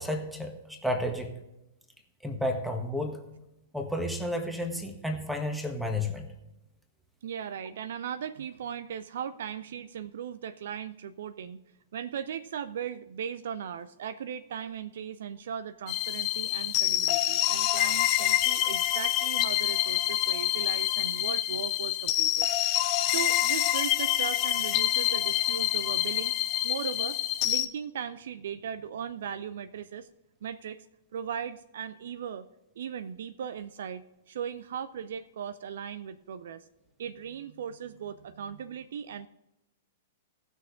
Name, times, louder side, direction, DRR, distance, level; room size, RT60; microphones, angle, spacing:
voice 1, 0.0-1.3 2.2-3.2 3.7-6.3, left 1 dB, ahead, 5 dB, 1.5 m, -31 dB
voice 2, 7.2-11.6 11.9-22.5 23.0-26.3 26.6-27.2 27.4-30.1 30.4-30.8 31.1-32.5 32.8-36.7 37.0-39.3, right 8 dB, 55° right, 13 dB, 0.4 m, -38 dB
sound 1, 15.9-27.7, left 14 dB, 35° left, 0.7 m, -27 dB
17.5 x 6.4 x 3.6 m, 0.96 s
figure-of-eight pair, 105°, 0 cm